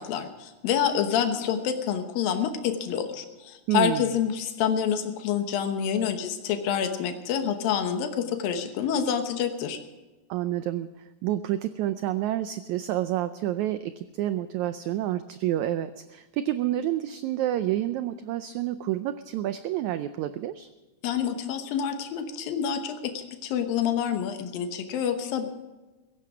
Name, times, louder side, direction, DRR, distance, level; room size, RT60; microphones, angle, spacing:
voice 1, 0.0-9.8 21.0-25.5, left 8 dB, 90° left, 6 dB, 2.9 m, -27 dB
voice 2, 3.7-4.2 10.3-10.9 11.2-20.7, right 13 dB, 80° right, 11 dB, 1.7 m, -29 dB
16.5 x 15.5 x 4.9 m, 1.2 s
omnidirectional pair, 3.9 m